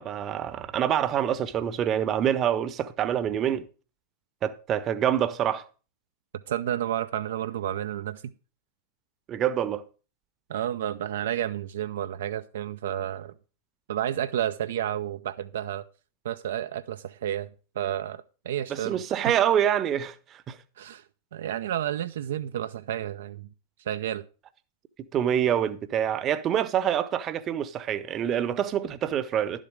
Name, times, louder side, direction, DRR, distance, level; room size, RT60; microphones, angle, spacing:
voice 1, 0.0-3.7 4.4-5.6 9.3-9.8 18.7-20.6 25.1-29.6, right 10 dB, 30° right, 0.8 m, -26 dB
voice 2, 6.5-8.2 10.5-13.3 13.9-15.8 16.2-17.5 17.8-19.3 20.8-21.0 21.3-23.5 23.9-24.2, right 11 dB, 60° right, 0.5 m, -31 dB
11.5 x 7.4 x 5.0 m
figure-of-eight pair, 90°, 0 cm